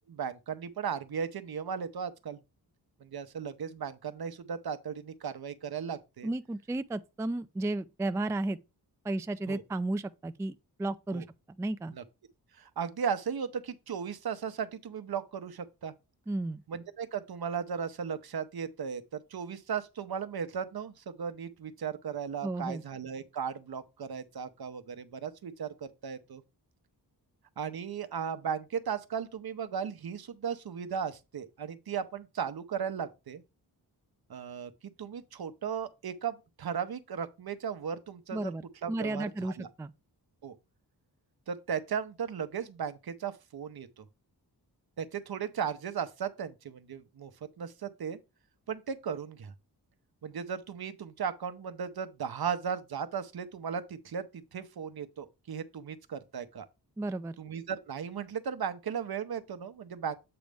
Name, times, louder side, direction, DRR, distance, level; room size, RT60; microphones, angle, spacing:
voice 1, 0.1-2.4 3.0-6.3 9.5-9.6 11.1-11.2 11.9-12.0 12.5-15.9 16.7-26.4 27.6-33.4 34.3-38.5 38.8-39.7 40.4-40.6 41.5-44.0 45.0-47.3 47.6-48.2 48.7-49.5 50.2-56.7 57.4-60.2, right 7 dB, 65° right, 0.8 m, -36 dB
voice 2, 6.2-8.6 9.0-11.9 16.3-16.6 22.4-22.8 38.3-39.9 57.0-57.4, right 2 dB, 10° right, 0.3 m, -33 dB
7.8 x 5.1 x 3.4 m
wide cardioid pair, 95°, 40 cm